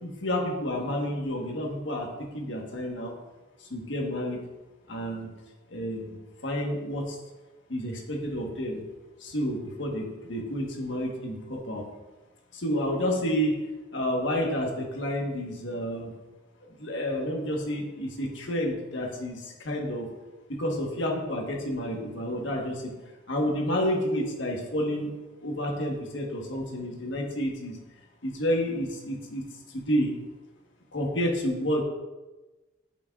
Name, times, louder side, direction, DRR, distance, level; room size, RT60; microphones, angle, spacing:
voice 1, 0.0-3.1 3.6-4.4 4.9-5.3 5.7-6.2 6.4-7.2 7.7-8.8 9.2-11.8 12.5-13.6 13.9-16.1 16.8-20.1 20.6-22.9 23.3-25.1 25.4-27.8 28.2-29.4 29.7-30.1 30.9-31.8, equal, 70° left, 0 dB, 1.3 m, -30 dB
8.4 x 6.1 x 2.4 m, 1.1 s
head